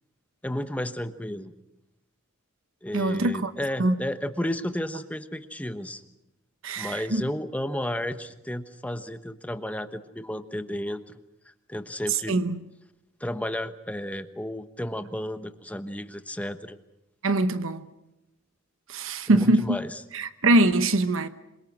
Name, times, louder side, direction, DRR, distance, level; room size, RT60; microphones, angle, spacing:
voice 1, 0.4-1.5 2.8-6.0 6.8-11.0 11.7-12.4 13.2-16.8 19.3-20.0, left 1 dB, 5° left, 1.1 m, -32 dB
voice 2, 2.9-3.5 3.8-3.9 6.6-7.2 12.1-12.6 17.2-17.8 18.9-19.8 20.1-21.3, right 2 dB, 70° right, 1.0 m, -23 dB
26.5 x 23.0 x 6.2 m
head